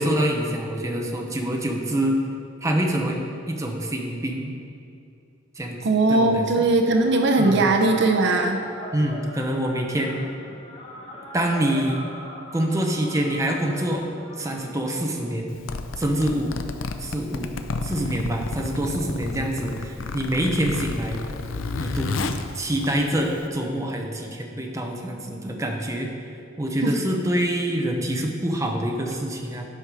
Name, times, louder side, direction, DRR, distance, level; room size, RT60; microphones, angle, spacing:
voice 1, 0.0-2.2 2.6-3.2 3.5-4.5 5.6-6.4 7.4-7.7 8.9-10.2 11.3-12.0 12.5-14.1 14.4-15.6 16.0-16.5 17.0-21.2 21.8-22.3 22.5-26.1 26.6-29.7, right 1 dB, 15° right, 1 dB, 0.8 m, -26 dB
voice 2, 5.8-8.6 26.8-26.9, right 2 dB, 60° right, 4 dB, 0.6 m, -19 dB
sound 1, 6.9-15.4, equal, 25° left, 1.0 m, -40 dB
Zipper (clothing), 15.5-23.5, left 3 dB, 75° left, 0.5 m, -31 dB
9.8 x 5.7 x 4.8 m, 2.5 s
head